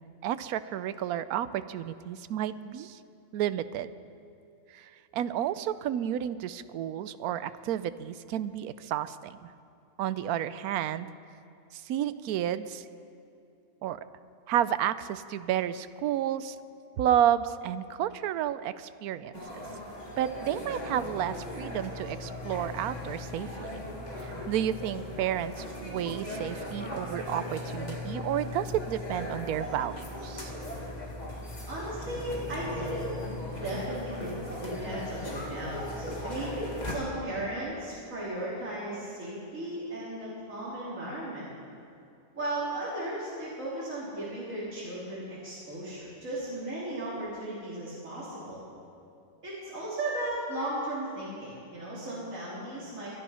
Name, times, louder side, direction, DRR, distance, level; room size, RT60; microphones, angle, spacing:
voice 1, 0.2-3.0 3.3-3.9 4.7-9.5 10.0-11.1 11.7-12.8 13.8-14.0 14.5-16.6 17.0-19.6 20.2-23.7 24.2-30.5, right 11 dB, 80° right, 14 dB, 1.1 m, -31 dB
sound 1, 19.3-36.9, left 1 dB, 30° left, 2.1 m, -38 dB
voice 2, 31.7-33.1 33.5-34.3 34.6-36.6 36.9-41.5 42.3-48.6 49.4-53.1, right 1 dB, 60° right, -9 dB, 3.6 m, -36 dB
22.5 x 11.0 x 5.6 m, 2.6 s
omnidirectional pair, 1.6 m